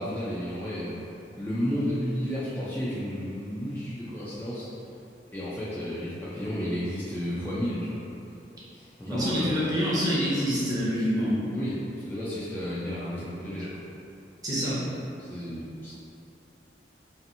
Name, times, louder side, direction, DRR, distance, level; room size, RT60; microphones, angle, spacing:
voice 1, 0.0-4.7 5.3-8.0 8.7-9.7 11.5-13.8 15.2-15.9, equal, 10° left, -10 dB, 0.3 m, -32 dB
voice 2, 9.1-11.4 14.4-14.9, equal, 20° right, -9 dB, 0.7 m, -26 dB
2.7 x 2.4 x 2.6 m, 2.7 s
head